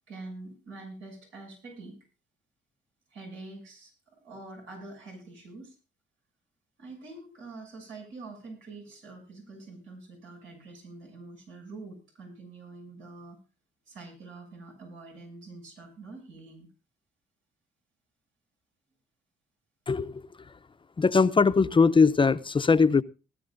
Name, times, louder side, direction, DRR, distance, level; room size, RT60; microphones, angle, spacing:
voice 1, 0.1-2.0 3.1-5.8 6.8-13.4 13.9-16.7, right 3 dB, 80° right, 6.9 m, -45 dB
voice 2, 19.9-20.2 21.0-23.0, left 4 dB, 25° left, 0.6 m, -21 dB
19.5 x 13.0 x 2.6 m
cardioid pair, 90°, 20 cm